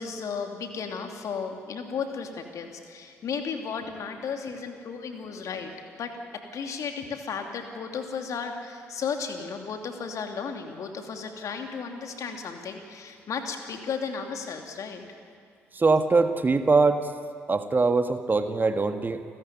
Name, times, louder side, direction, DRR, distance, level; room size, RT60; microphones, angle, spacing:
voice 1, 0.0-5.7 6.0-6.2 6.5-15.0, left 6 dB, 50° left, 4 dB, 2.8 m, -34 dB
voice 2, 15.7-17.1 17.5-19.2, right 3 dB, 30° right, 8 dB, 1.5 m, -22 dB
29.5 x 14.5 x 9.5 m, 2.2 s
figure-of-eight pair, 45°, 7 cm